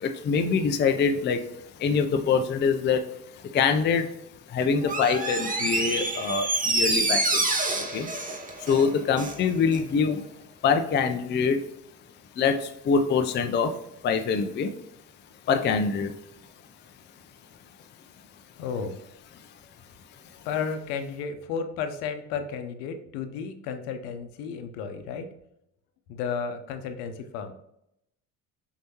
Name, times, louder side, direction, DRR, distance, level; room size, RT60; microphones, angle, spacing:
voice 1, 0.0-1.4 1.8-3.0 3.5-4.1 4.5-7.2 7.9-8.1 8.7-10.2 10.6-11.6 12.4-12.6 12.9-13.7 14.0-14.7 15.5-16.1, left 5 dB, 25° left, 0.5 m, -24 dB
Door, 4.8-9.4 9.7-9.8, right 2 dB, 15° right, 0.8 m, -27 dB
voice 2, 18.6-19.0 20.4-25.3 26.1-27.5, left 6 dB, 65° left, 0.8 m, -33 dB
6.1 x 2.9 x 2.9 m
hypercardioid pair, 60°, 48 cm